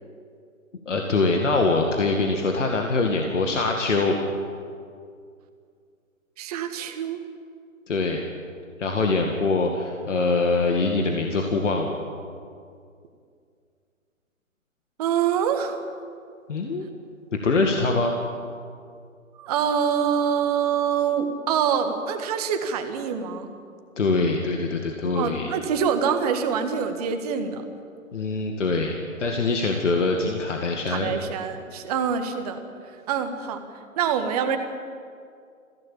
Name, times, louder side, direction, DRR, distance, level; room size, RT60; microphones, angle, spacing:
voice 1, 0.9-4.2 7.9-8.2 8.8-12.0 16.5-16.9 17.3-18.1 24.0-25.5 28.1-31.1, left 3 dB, 60° left, 2 dB, 2.2 m, -23 dB
voice 2, 6.4-7.2 15.0-15.8 19.3-23.5 25.1-27.6 30.9-32.6 33.1-33.7 34.0-34.6, right 7 dB, 30° right, 7 dB, 1.7 m, -25 dB
22.0 x 16.0 x 8.6 m, 2.3 s
figure-of-eight pair, 140°, 40 cm